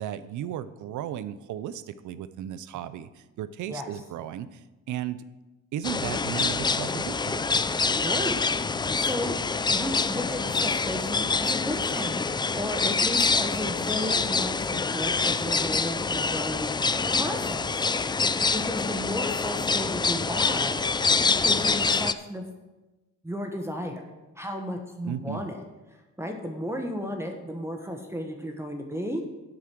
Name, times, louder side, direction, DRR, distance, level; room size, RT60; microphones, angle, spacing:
voice 1, 0.0-5.2 5.7-7.5 25.0-25.5, right 10 dB, 80° right, 14 dB, 0.6 m, -35 dB
sound 1, 5.8-22.1, left 4 dB, 15° left, 0.3 m, -26 dB
voice 2, 8.0-8.4 9.0-9.4 9.7-16.8 17.2-17.8 18.3-20.8 21.4-22.5 23.2-24.0 24.4-25.6 25.9-29.3, equal, 10° right, 3 dB, 1.3 m, -34 dB
8.6 x 8.0 x 6.1 m, 1.1 s
cardioid pair, 90°, 30 cm